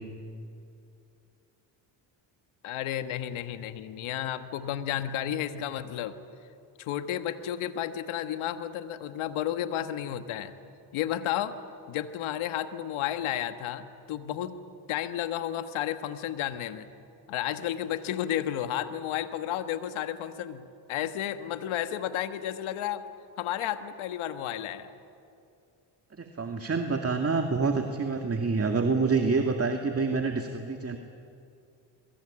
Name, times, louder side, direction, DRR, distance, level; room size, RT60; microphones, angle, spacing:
voice 1, 2.6-6.1 6.8-10.5 10.9-11.6 11.9-14.6 14.9-16.9 17.3-23.0 23.4-24.9, left 11 dB, 90° left, 10 dB, 1.4 m, -32 dB
voice 2, 26.1-31.0, right 4 dB, 30° right, 4 dB, 2.2 m, -27 dB
29.0 x 22.5 x 8.7 m, 2.5 s
cardioid pair, 80°, 47 cm